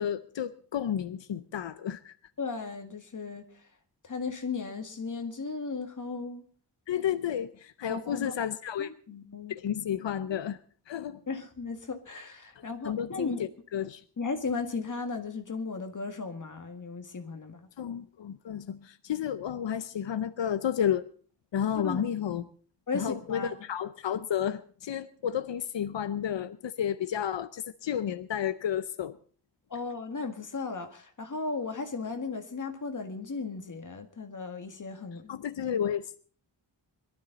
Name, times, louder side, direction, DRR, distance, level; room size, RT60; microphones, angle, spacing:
voice 1, 0.0-2.2 6.9-8.9 9.5-10.6 10.9-11.2 12.8-14.0 17.8-21.1 21.5-22.4 22.9-29.2 35.3-36.2, left 9 dB, 90° left, 12 dB, 0.7 m, -31 dB
voice 2, 2.4-3.5 4.0-6.4 7.9-8.3 8.8-9.5 11.3-13.4 14.2-17.7 21.7-22.1 22.9-23.5 29.7-35.4, left 4 dB, 45° left, 5 dB, 1.9 m, -36 dB
21.5 x 12.5 x 4.1 m, 0.44 s
wide cardioid pair, 135°, 43 cm